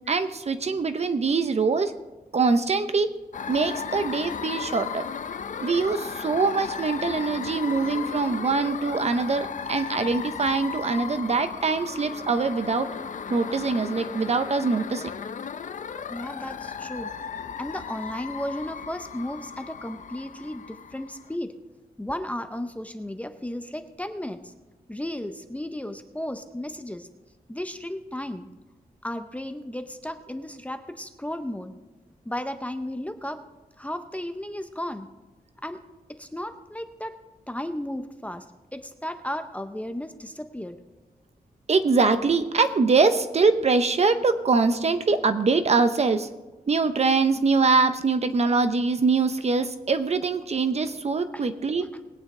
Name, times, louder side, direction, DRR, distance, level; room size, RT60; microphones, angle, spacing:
voice 1, 0.1-1.9 2.3-3.1 3.5-5.0 5.6-12.9 13.3-15.0 41.7-46.3 46.7-51.8, right 4 dB, 45° right, 10 dB, 0.7 m, -23 dB
sound 1, 3.3-21.3, left 6 dB, 55° left, 0.5 m, -35 dB
voice 2, 16.1-17.1 17.6-21.5 22.0-24.5 24.9-27.1 27.5-28.5 29.0-31.7 32.2-33.4 33.8-35.1 35.6-35.8 36.1-37.2 37.5-38.5 38.7-40.8 51.3-51.4, left 1 dB, 10° left, 8 dB, 0.6 m, -34 dB
20.5 x 8.8 x 3.7 m, 1.2 s
wide cardioid pair, 180°, 16 cm